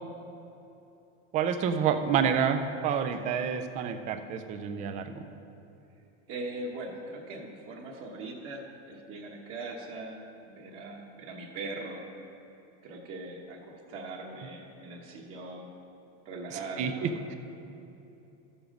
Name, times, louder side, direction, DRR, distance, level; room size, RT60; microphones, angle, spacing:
voice 1, 1.3-5.2 16.8-17.1, right 7 dB, 20° right, 8 dB, 0.3 m, -28 dB
voice 2, 6.3-12.0 12.8-15.7 16.2-17.4, right 2 dB, 40° right, -1 dB, 1.2 m, -41 dB
13.0 x 7.0 x 5.1 m, 2.9 s
supercardioid pair, 160°, 35 cm